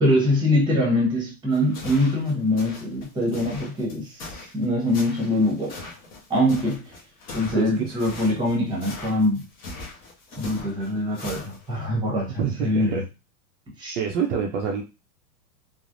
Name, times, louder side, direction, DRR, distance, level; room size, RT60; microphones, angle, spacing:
voice 1, 0.0-5.8 6.3-7.0 7.3-9.4 10.4-13.0 13.8-14.0, left 1 dB, 10° right, -2 dB, 0.9 m, -23 dB
sound 1, 1.5-11.8, left 3 dB, 20° left, 0.4 m, -40 dB
voice 2, 7.5-8.0 12.4-13.0 14.0-14.8, right 7 dB, 50° right, 1 dB, 0.5 m, -26 dB
3.2 x 2.0 x 2.5 m, 0.29 s
supercardioid pair, 145°, 49 cm